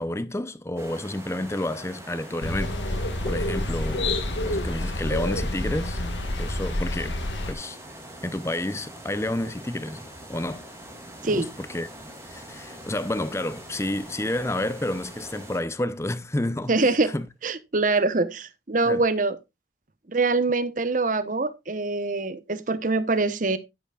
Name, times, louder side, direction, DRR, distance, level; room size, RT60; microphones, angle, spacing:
voice 1, 0.0-6.0 6.4-7.2 7.5-7.8 8.2-10.6 11.3-11.9 12.2-17.3 18.9-19.0, left 1 dB, 15° left, 0.6 m, -30 dB
sound 1, 0.8-15.6, right 1 dB, 15° right, 2.8 m, -43 dB
sound 2, 2.4-7.5, left 1 dB, 85° left, 1.7 m, -28 dB
voice 2, 16.7-17.1 17.4-19.4 20.1-23.6, right 3 dB, 45° right, 1.0 m, -24 dB
12.0 x 10.5 x 2.4 m
head